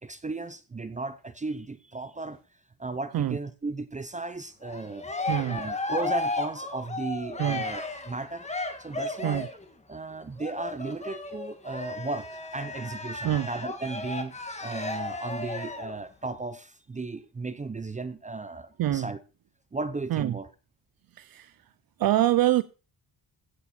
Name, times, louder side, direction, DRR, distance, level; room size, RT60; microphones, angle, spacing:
voice 1, 0.0-2.4 2.8-8.5 8.8-9.5 9.9-14.3 14.6-19.2 19.7-20.5, right 3 dB, 20° right, 0.6 m, -35 dB
Cheering, 4.6-9.6 10.4-16.0, left 2 dB, 15° left, 1.6 m, -34 dB
voice 2, 5.3-5.6 7.4-7.6 9.2-9.5 13.2-13.5 18.8-19.1 20.1-20.4 21.1-21.6 22.0-22.6, right 13 dB, 60° right, 0.5 m, -25 dB
15.5 x 7.1 x 4.3 m
wide cardioid pair, 170°, 41 cm